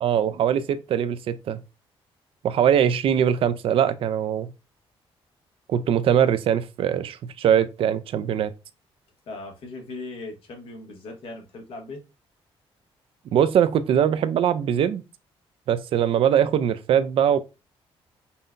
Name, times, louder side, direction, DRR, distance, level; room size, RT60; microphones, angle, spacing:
voice 1, 0.0-1.6 2.4-4.5 5.7-8.5 13.3-15.0 15.7-17.4, right 9 dB, 60° right, 0.4 m, -22 dB
voice 2, 9.3-12.0, left 2 dB, 65° left, 1.2 m, -38 dB
5.4 x 2.2 x 2.5 m
cardioid pair, 135°, 10 cm